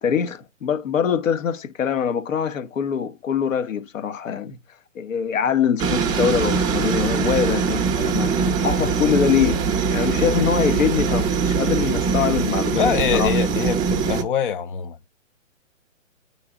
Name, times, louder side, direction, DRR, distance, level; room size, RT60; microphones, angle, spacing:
voice 1, 0.0-4.6 4.9-8.3 8.6-9.6 9.9-13.3, left 8 dB, 75° left, 1.3 m, -23 dB
sound 1, 5.8-14.2, right 5 dB, 10° right, 0.6 m, -22 dB
voice 2, 12.7-15.0, left 7 dB, 40° left, 0.5 m, -24 dB
10.0 x 3.9 x 3.7 m
hypercardioid pair, 140°, 40 cm